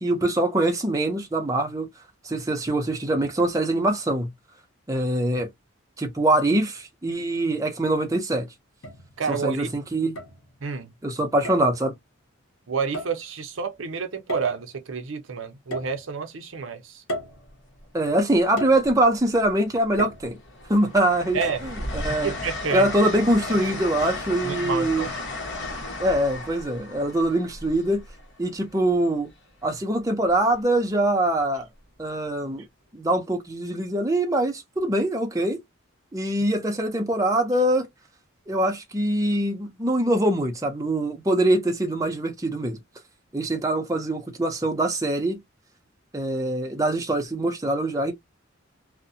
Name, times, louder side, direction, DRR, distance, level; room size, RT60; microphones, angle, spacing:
voice 1, 0.0-1.9 2.2-4.3 4.9-5.5 6.0-8.5 9.3-10.1 11.0-11.9 17.9-20.4 20.7-22.3 22.7-25.1 26.0-28.0 28.4-29.3 29.6-31.7 32.0-32.6 32.9-35.6 36.1-37.9 38.5-42.8 43.3-45.4 46.1-48.1, right 1 dB, 15° right, 0.5 m, -23 dB
sound 1, 7.7-7.9 8.8-9.5 10.2-10.8 11.4-11.8 12.9-13.3 14.3-14.8 15.7-16.4 17.1-17.9 18.6-19.3 20.0-20.7 21.4-21.9 22.7-23.3 24.0-24.1, equal, 80° left, 0.8 m, -35 dB
voice 2, 9.2-9.7 10.6-10.9 12.7-17.0 21.3-21.6 22.2-22.9 24.4-25.1, right 5 dB, 70° right, 0.6 m, -29 dB
Train, 17.2-17.5 18.8-19.5 19.9-28.7 30.3-30.5, left 2 dB, 60° left, 1.0 m, -35 dB
2.6 x 2.1 x 2.6 m
head